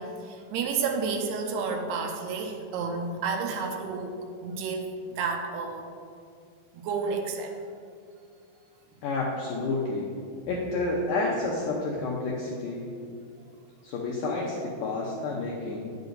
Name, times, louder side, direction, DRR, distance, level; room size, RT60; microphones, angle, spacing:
voice 1, 0.0-5.8 6.7-7.6, right 4 dB, 80° right, 3 dB, 2.7 m, -31 dB
voice 2, 9.0-10.1 10.5-12.9 13.8-15.9, left 3 dB, 90° left, -3 dB, 1.9 m, -30 dB
9.2 x 8.0 x 4.0 m, 2.4 s
omnidirectional pair, 4.9 m